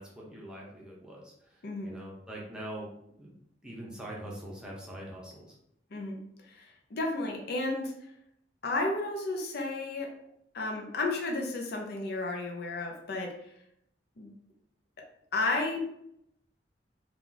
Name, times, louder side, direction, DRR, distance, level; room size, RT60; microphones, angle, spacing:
voice 1, 0.0-3.4 3.6-5.5, right 1 dB, 5° right, -4 dB, 0.8 m, -43 dB
voice 2, 1.6-1.9 5.9-6.2 6.5-7.9 8.6-10.2 10.5-13.5 14.2-14.3 15.0-15.1 15.3-15.8, left 2 dB, 60° left, 1 dB, 0.6 m, -32 dB
2.9 x 2.4 x 3.8 m, 0.75 s
head